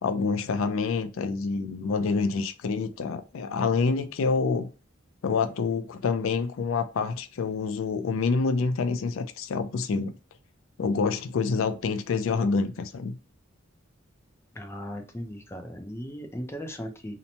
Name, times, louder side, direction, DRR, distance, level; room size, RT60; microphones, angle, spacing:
voice 1, 0.0-4.7 5.2-10.1 10.8-13.2, left 4 dB, 85° left, 0.4 m, -27 dB
voice 2, 14.5-17.2, equal, 15° left, 0.4 m, -37 dB
2.8 x 2.1 x 2.6 m
head